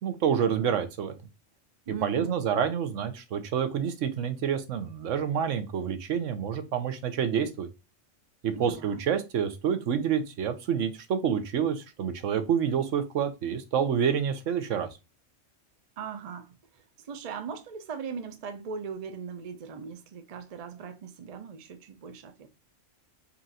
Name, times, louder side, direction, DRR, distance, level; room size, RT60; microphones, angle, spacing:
voice 1, 0.0-1.1 2.0-7.7 8.4-14.9, right 8 dB, 85° right, 1.1 m, -28 dB
voice 2, 1.9-2.4 8.5-9.0 16.0-22.5, right 6 dB, 45° right, 0.5 m, -39 dB
4.3 x 2.5 x 4.1 m
omnidirectional pair, 1.3 m